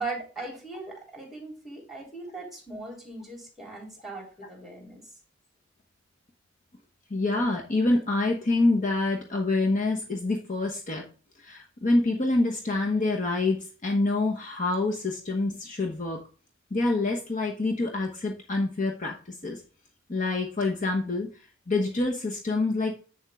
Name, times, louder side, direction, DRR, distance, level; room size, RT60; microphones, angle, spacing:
voice 1, 0.0-5.0, right 3 dB, ahead, 0 dB, 3.6 m, -39 dB
voice 2, 7.1-11.0 11.4-13.6 13.8-16.2 16.7-19.6 20.1-21.3 21.7-22.9, left 2 dB, 40° left, 1 dB, 1.1 m, -26 dB
8.1 x 7.2 x 3.6 m, 0.37 s
head